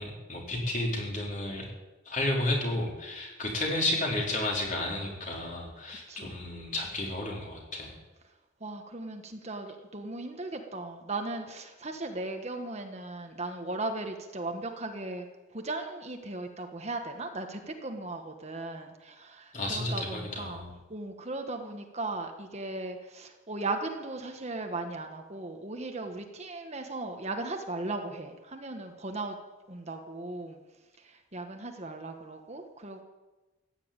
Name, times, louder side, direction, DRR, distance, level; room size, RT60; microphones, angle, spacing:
voice 1, 0.0-1.7 2.1-8.0 19.5-20.7, left 1 dB, 40° left, -1 dB, 4.3 m, -32 dB
voice 2, 8.6-15.2 15.5-20.6 20.9-29.4 29.7-30.6 31.0-33.0, right 2 dB, 35° right, 4 dB, 1.4 m, -37 dB
15.5 x 10.5 x 8.9 m, 1.1 s
head